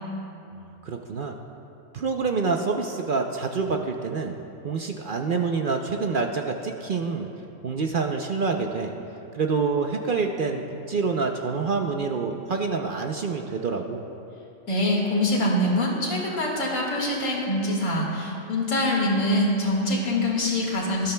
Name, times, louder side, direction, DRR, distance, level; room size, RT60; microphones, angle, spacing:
voice 1, 0.8-1.3 1.9-4.4 4.6-7.3 7.6-8.9 9.3-14.0, right 4 dB, 55° right, 3 dB, 0.6 m, -27 dB
voice 2, 14.7-21.1, left 1 dB, 85° left, -3 dB, 2.3 m, -24 dB
18.5 x 12.5 x 2.2 m, 2.8 s
omnidirectional pair, 1.3 m